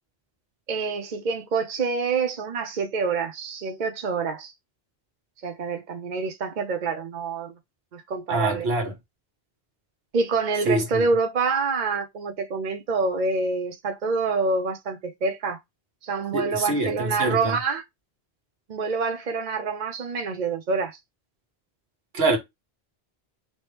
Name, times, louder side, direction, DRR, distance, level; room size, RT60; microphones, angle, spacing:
voice 1, 0.7-4.5 5.4-7.5 7.9-8.7 10.1-15.6 16.0-17.8 18.7-21.0, right 4 dB, 50° right, 0.7 m, -26 dB
voice 2, 8.3-8.9 10.6-11.0 16.3-17.6 22.1-22.4, right 2 dB, 75° right, 1.5 m, -25 dB
4.1 x 3.0 x 3.3 m
omnidirectional pair, 1.0 m